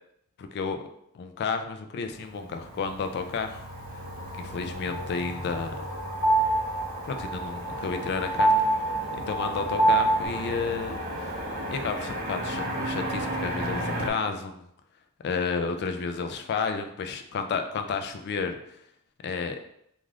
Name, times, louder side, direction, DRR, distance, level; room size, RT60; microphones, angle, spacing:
voice 1, 0.4-0.9 1.1-3.6 4.4-5.8 7.0-8.5 9.3-11.3 11.7-14.6 15.2-18.6 19.2-19.6, left 5 dB, 50° left, 7 dB, 0.3 m, -31 dB
Motor vehicle (road), 2.2-14.1, equal, 45° right, 0.6 m, -35 dB
sound 1, 4.9-10.2, right 2 dB, 80° left, 0.9 m, -25 dB
2.5 x 2.4 x 3.2 m, 0.74 s
head